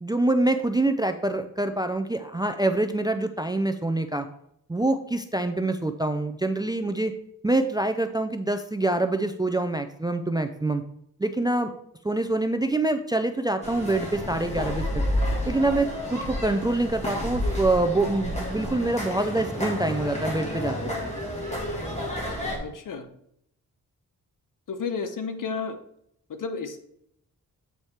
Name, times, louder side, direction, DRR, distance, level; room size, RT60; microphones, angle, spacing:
voice 1, 0.0-4.3 4.7-7.1 7.4-10.8 11.2-11.7 12.0-14.9 15.5-21.1, right 2 dB, 15° right, 8 dB, 0.3 m, -25 dB
sound 1, 13.6-22.6, left 1 dB, 20° left, 1.7 m, -30 dB
voice 2, 22.6-23.1 24.7-25.8 26.3-26.8, left 5 dB, 65° left, 8 dB, 0.9 m, -32 dB
8.1 x 4.7 x 4.2 m, 0.72 s
wide cardioid pair, 180°, 34 cm